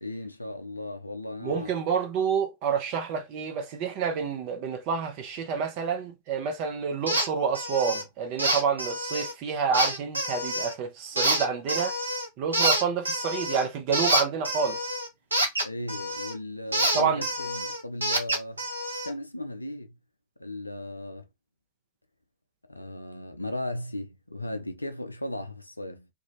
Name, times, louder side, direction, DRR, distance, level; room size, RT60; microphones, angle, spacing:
voice 1, 0.0-1.7 15.6-18.6 19.0-19.9 20.4-21.3 22.7-26.1, left 1 dB, 85° left, 0.4 m, -36 dB
voice 2, 1.4-11.9 12.4-14.8 16.9-17.3, right 6 dB, 45° right, 0.9 m, -28 dB
sound 1, 7.1-7.3 7.5-8.0 8.4-9.3 9.7-10.7 11.2-12.3 12.5-16.3 16.7-19.1, right 1 dB, 80° right, 0.7 m, -27 dB
2.5 x 2.3 x 2.9 m
figure-of-eight pair, 90°, 0 cm